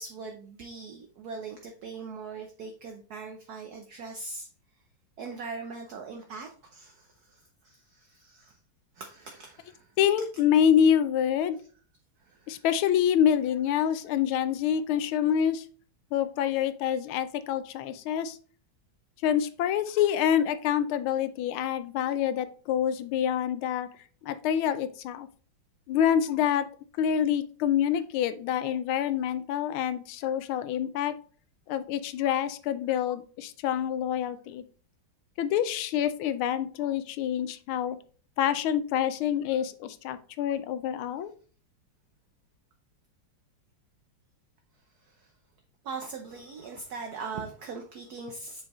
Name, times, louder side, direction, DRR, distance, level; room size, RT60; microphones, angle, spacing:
voice 1, 0.0-4.5 5.2-8.6 8.9-9.9 12.2-12.6 45.0-45.3 45.8-48.6, right 4 dB, 60° right, 3 dB, 1.1 m, -41 dB
voice 2, 10.0-11.6 12.5-15.6 16.1-18.4 19.2-23.9 24.2-25.3 25.9-26.7 27.0-31.1 31.7-34.6 35.4-38.0 38.4-41.3, left 9 dB, 80° left, 12 dB, 1.4 m, -26 dB
7.5 x 4.9 x 3.0 m, 0.42 s
omnidirectional pair, 2.3 m